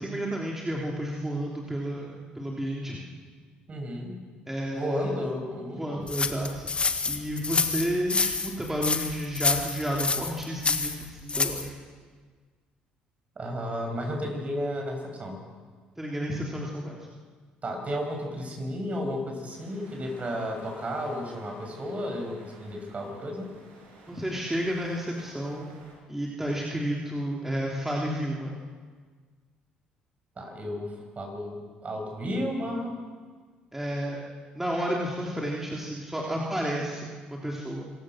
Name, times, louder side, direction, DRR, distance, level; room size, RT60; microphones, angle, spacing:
voice 1, 0.0-3.0 4.5-5.2 5.8-6.7 7.1-11.7 16.0-17.0 24.1-25.7 26.1-28.6 33.7-34.2 34.6-37.8, equal, 10° right, -3 dB, 3.5 m, -31 dB
voice 2, 3.7-4.2 4.7-6.1 13.4-15.4 17.6-23.5 30.4-33.0, equal, 35° right, 3 dB, 7.7 m, -33 dB
sound 1, 6.1-11.7, left 4 dB, 30° left, 1.9 m, -28 dB
sound 2, 19.5-25.9, right 2 dB, 75° right, 6.6 m, -53 dB
26.5 x 17.5 x 6.5 m, 1.5 s
hypercardioid pair, 60°, 4 cm